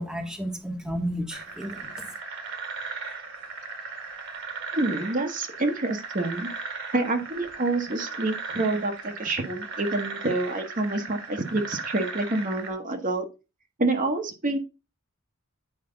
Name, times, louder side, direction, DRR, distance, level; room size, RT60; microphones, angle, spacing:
voice 1, 0.0-2.0, equal, 5° right, 3 dB, 1.1 m, -32 dB
sound 1, 1.3-12.7, right 4 dB, 60° right, 1.7 m, -37 dB
voice 2, 4.7-6.5 6.9-13.3 13.8-14.6, right 2 dB, 40° right, 5 dB, 1.0 m, -27 dB
8.9 x 5.0 x 3.8 m, 0.28 s
head